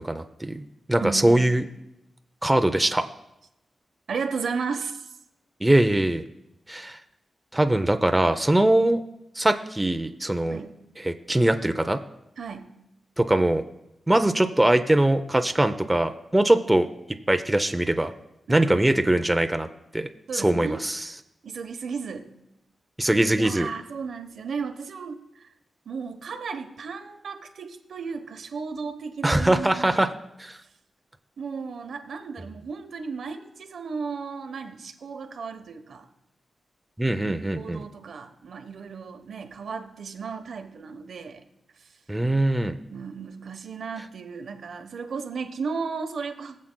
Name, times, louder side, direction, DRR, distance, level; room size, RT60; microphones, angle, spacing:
voice 1, 0.0-1.6 2.4-3.0 5.6-6.2 6.7-7.0 7.5-9.0 9.4-10.6 11.0-12.0 13.2-13.6 14.1-16.9 17.3-18.1 18.5-19.7 19.9-21.1 23.0-23.7 29.2-30.1 30.4-30.6 37.0-37.8 42.1-42.8, right 1 dB, 10° right, 7 dB, 0.6 m, -22 dB
voice 2, 1.0-1.5 4.1-5.1 10.5-10.8 12.4-12.7 18.5-18.9 20.3-20.8 21.4-22.3 23.4-25.5 25.9-30.1 31.4-36.1 37.6-41.4 41.8-41.9 42.9-46.6, right 5 dB, 80° right, 6 dB, 1.0 m, -34 dB
21.5 x 7.4 x 2.2 m, 0.87 s
cardioid pair, 85°, 0 cm